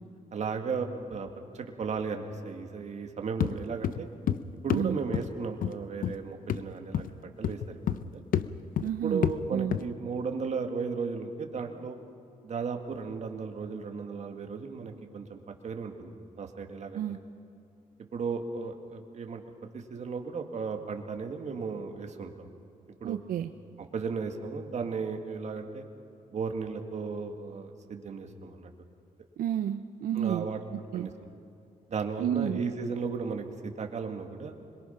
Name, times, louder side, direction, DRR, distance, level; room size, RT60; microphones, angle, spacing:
voice 1, 0.3-1.3 1.5-4.1 4.6-7.6 7.9-8.2 9.0-12.0 12.4-17.2 18.1-19.4 19.7-22.5 23.0-23.2 23.9-25.9 26.3-28.7 30.1-30.6 30.9-31.1 31.9-33.5 33.8-34.5, right 5 dB, 50° right, 4 dB, 2.1 m, -35 dB
sound 1, 3.4-3.6 3.8-4.4 4.7-4.9 5.1-5.3 5.6-5.8 6.0-6.2 6.5-6.7 6.9-7.1 7.4-8.1 8.3-8.5 8.8-8.9 9.2-9.4 9.7-9.8, left 9 dB, 75° left, 0.7 m, -28 dB
voice 2, 8.8-9.2 9.5-9.8 16.9-17.2 23.0-23.5 29.4-30.4 30.9-31.1 32.2-32.6, right 10 dB, 85° right, 8 dB, 0.7 m, -30 dB
26.0 x 22.0 x 5.8 m, 2.5 s
cardioid pair, 115°, 15 cm